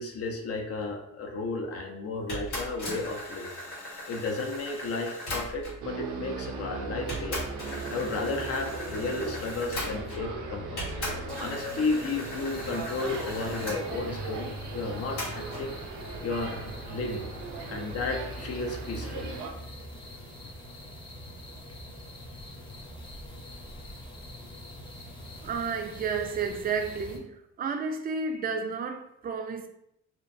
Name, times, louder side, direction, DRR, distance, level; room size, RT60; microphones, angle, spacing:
voice 1, 0.0-3.5 4.1-7.4 7.9-10.8 11.4-15.7 16.2-17.2 17.7-19.3, left 3 dB, 55° left, 0.6 m, -33 dB
sound 1, 2.3-5.9 6.6-6.7 7.1-10.4 10.8-13.8 15.2-15.7, left 1 dB, 80° left, 1.4 m, -38 dB
sound 2, 5.8-19.5, right 3 dB, 85° right, 0.5 m, -38 dB
sound 3, 12.5-27.2, left 1 dB, 15° left, 0.7 m, -44 dB
voice 2, 25.4-29.7, right 5 dB, 30° right, 0.4 m, -31 dB
2.9 x 2.0 x 2.5 m
cardioid pair, 90°, 30 cm